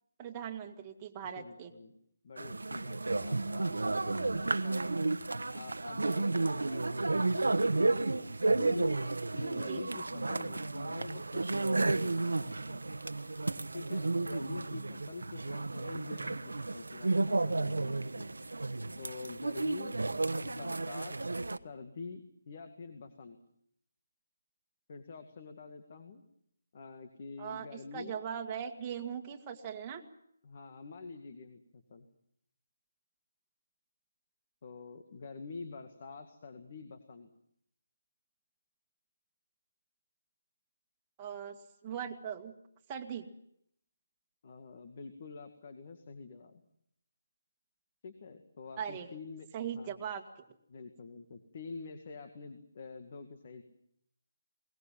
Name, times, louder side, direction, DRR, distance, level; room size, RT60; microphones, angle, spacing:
voice 1, 0.2-1.7 9.5-9.8 27.4-30.0 41.2-41.6 41.8-42.5 42.9-43.3 48.8-49.1 49.5-50.2, right 8 dB, 20° right, 2 dB, 1.9 m, -39 dB
voice 2, 1.4-1.9 2.2-5.0 5.5-7.9 8.5-13.0 13.7-18.3 19.0-20.0 20.4-21.2 21.6-23.4 24.9-26.2 26.7-28.2 30.4-32.1 34.6-37.3 44.4-46.6 48.0-49.5 49.7-50.0 50.7-53.6, left 4 dB, 45° left, 7 dB, 2.0 m, -47 dB
sound 1, 2.4-21.6, right 2 dB, 85° right, 1.1 m, -32 dB
21.5 x 19.5 x 7.4 m, 0.73 s
figure-of-eight pair, 160°, 0 cm